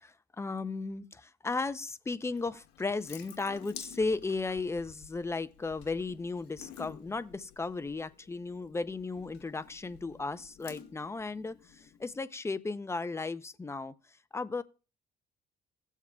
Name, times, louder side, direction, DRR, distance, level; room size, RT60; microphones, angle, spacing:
voice 1, 0.0-13.9 14.3-14.6, left 3 dB, 15° left, 0.5 m, -35 dB
Water tap faucet / Sink (filling or washing) / Drip, 2.3-12.1, left 9 dB, 85° left, 1.3 m, -52 dB
16.5 x 7.3 x 2.3 m
cardioid pair, 110°, 17 cm